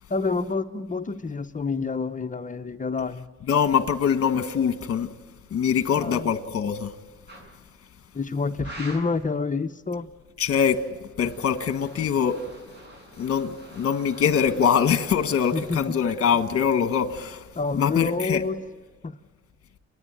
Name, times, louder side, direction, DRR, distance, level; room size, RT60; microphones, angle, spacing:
voice 1, 0.1-3.3 6.0-6.3 8.1-10.1 15.5-16.0 17.5-18.6 19.0-19.1, left 4 dB, 25° left, 0.9 m, -28 dB
voice 2, 3.5-5.1 5.5-6.9 10.4-10.8 11.2-12.4 13.2-17.4 17.8-18.4, left 7 dB, 50° left, 1.5 m, -23 dB
sound 1, 7.3-7.5 8.6-9.2 11.0-15.8, right 1 dB, 35° right, 7.4 m, -45 dB
30.0 x 10.0 x 9.0 m
cardioid pair, 90°, 30 cm